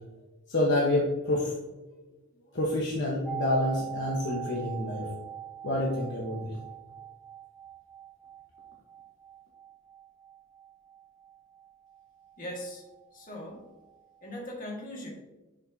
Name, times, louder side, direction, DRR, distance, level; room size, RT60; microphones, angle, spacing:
voice 1, 0.5-1.5 2.5-5.1 5.6-6.5, left 1 dB, 55° left, -4 dB, 1.2 m, -28 dB
sound 1, 3.2-13.0 13.3-13.4, right 9 dB, ahead, 0.8 m, -42 dB
voice 2, 12.4-12.8 13.1-13.6 14.2-15.1, left 1 dB, 40° left, -2 dB, 1.9 m, -39 dB
10.5 x 5.3 x 2.8 m, 1.1 s
head